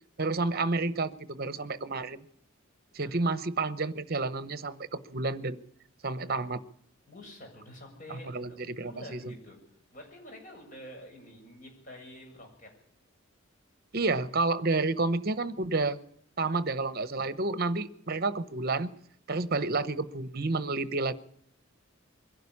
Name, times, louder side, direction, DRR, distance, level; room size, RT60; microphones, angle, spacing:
voice 1, 0.2-2.2 2.9-5.6 6.0-6.6 8.1-9.3 13.9-16.0 16.4-18.9 19.3-21.1, right 3 dB, 50° right, 1.0 m, -30 dB
voice 2, 7.1-9.6 9.9-12.7, equal, 40° left, 7.6 m, -48 dB
22.5 x 12.0 x 9.8 m
head